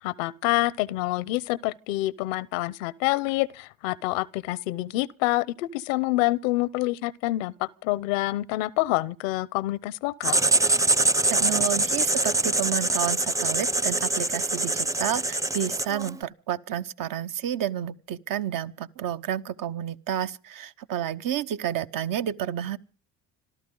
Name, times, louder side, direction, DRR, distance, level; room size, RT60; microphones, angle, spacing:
voice 1, 0.0-10.4, left 18 dB, 90° left, 0.7 m, -27 dB
Writing, 10.2-16.2, right 2 dB, 10° right, 0.7 m, -24 dB
voice 2, 11.3-22.8, right 10 dB, 60° right, 1.1 m, -30 dB
26.5 x 13.0 x 3.8 m
hypercardioid pair, 60°, 37 cm